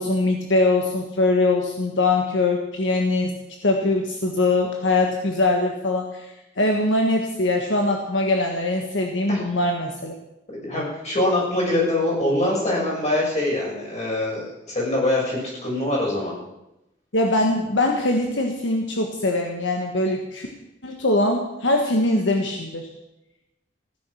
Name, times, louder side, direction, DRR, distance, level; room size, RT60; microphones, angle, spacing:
voice 1, 0.0-10.1 17.1-20.5 20.8-22.9, left 2 dB, 75° left, 2 dB, 1.5 m, -22 dB
voice 2, 10.6-16.3, left 1 dB, 40° left, -4 dB, 7.0 m, -24 dB
16.0 x 10.0 x 6.4 m, 0.92 s
head